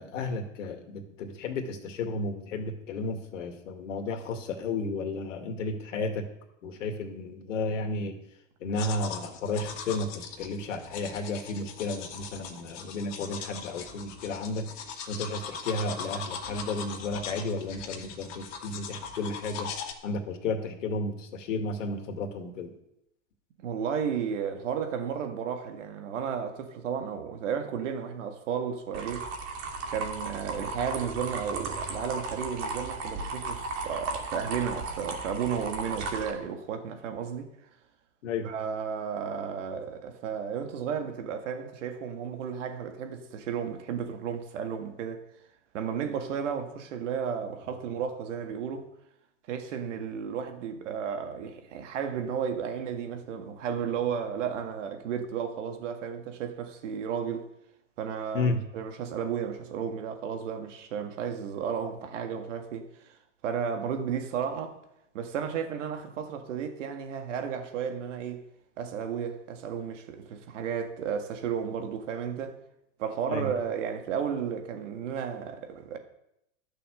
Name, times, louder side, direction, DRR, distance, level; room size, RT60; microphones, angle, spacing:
voice 1, 0.0-6.3 6.6-8.2 8.6-14.8 15.1-19.7 20.0-22.7 38.2-38.5 58.3-58.6 73.3-73.5, left 3 dB, 75° left, 2.3 m, -33 dB
sound 1, 8.8-19.9, left 6 dB, 50° left, 2.1 m, -40 dB
voice 2, 23.6-29.3 29.9-37.5 38.4-45.2 45.7-48.9 49.5-57.5 58.0-63.2 63.4-64.8 65.1-68.4 68.8-72.6 73.0-76.0, right 7 dB, 70° right, 2.0 m, -33 dB
sound 2, 28.9-36.3, right 3 dB, 50° right, 2.6 m, -35 dB
12.5 x 7.0 x 6.5 m
hypercardioid pair, 110°, 38 cm